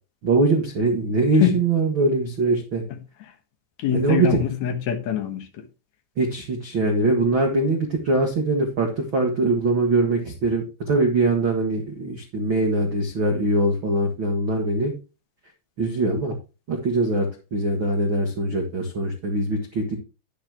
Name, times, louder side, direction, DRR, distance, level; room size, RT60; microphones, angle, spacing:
voice 1, 0.2-2.8 3.9-4.4 6.2-14.9 15.8-16.3 16.7-20.0, right 2 dB, 65° right, 1.2 m, -22 dB
voice 2, 3.8-5.6, left 9 dB, 70° left, 1.7 m, -24 dB
10.5 x 9.9 x 2.9 m
omnidirectional pair, 5.1 m